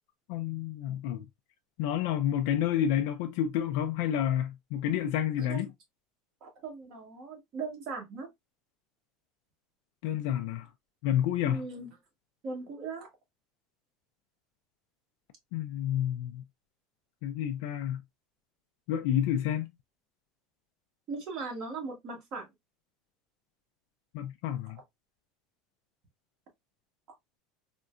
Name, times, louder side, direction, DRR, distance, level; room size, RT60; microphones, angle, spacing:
voice 1, 0.3-1.2 1.8-5.7 10.0-10.7 11.0-11.6 15.5-16.4 17.2-18.0 18.9-19.7 24.1-24.8, left 10 dB, 60° left, 0.4 m, -29 dB
voice 2, 6.4-8.3 11.4-11.9 12.4-13.1 21.1-22.5, right 4 dB, 35° right, 1.3 m, -38 dB
3.6 x 2.1 x 2.4 m
supercardioid pair, 165°, 0 cm